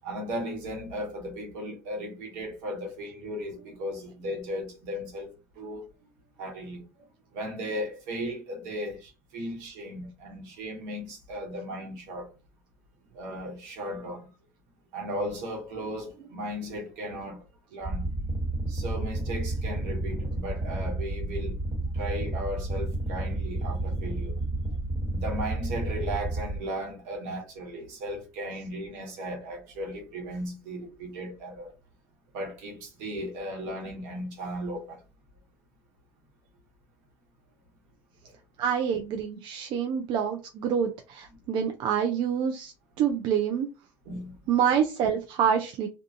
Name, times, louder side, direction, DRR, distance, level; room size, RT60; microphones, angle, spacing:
voice 1, 0.0-5.8 6.4-6.8 7.3-12.3 13.1-14.3 14.9-18.1 18.7-21.6 21.9-24.4 25.1-31.7 32.3-35.0 38.2-38.3 44.0-44.3, equal, 80° right, 1.1 m, -36 dB
sound 1, 17.8-26.6, right 2 dB, 35° right, 1.3 m, -31 dB
voice 2, 38.6-42.7 43.0-43.7 44.5-45.9, right 8 dB, 60° right, 0.4 m, -26 dB
2.6 x 2.3 x 2.4 m
hypercardioid pair, 75°, 9 cm